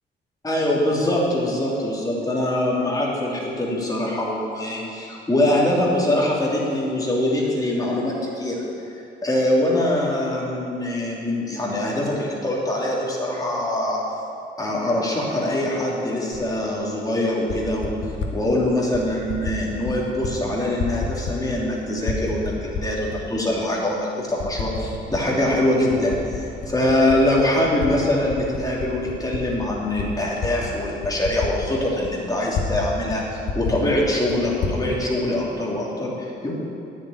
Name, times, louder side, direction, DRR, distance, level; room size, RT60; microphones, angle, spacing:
voice 1, 0.4-8.6 9.2-14.0 14.6-17.9 18.3-22.5 22.8-36.5, left 1 dB, 20° left, -4 dB, 3.0 m, -23 dB
Typing, 16.3-16.5 17.3-18.4 18.9-19.6 19.8-20.3 20.6-21.7 22.0-23.2 23.7-23.8 24.4-25.2 25.5-27.9 28.2-32.8 33.1-33.2 33.4-34.8, left 4 dB, 70° left, 1.5 m, -30 dB
10.0 x 7.3 x 8.8 m, 2.7 s
cardioid pair, 90°, 20 cm